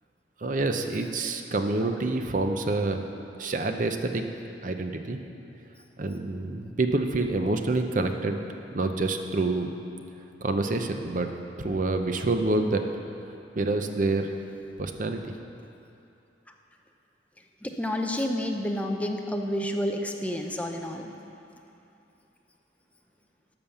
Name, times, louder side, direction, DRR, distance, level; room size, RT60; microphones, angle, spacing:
voice 1, 0.4-3.0 3.4-4.3 4.6-5.2 6.0-8.4 8.7-9.7 10.4-11.3 11.6-12.8 13.5-14.3 14.8-15.3, right 2 dB, 45° right, 6 dB, 0.7 m, -27 dB
voice 2, 17.6-21.1, left 1 dB, 10° left, 3 dB, 0.6 m, -29 dB
12.5 x 5.3 x 7.0 m, 2.7 s
head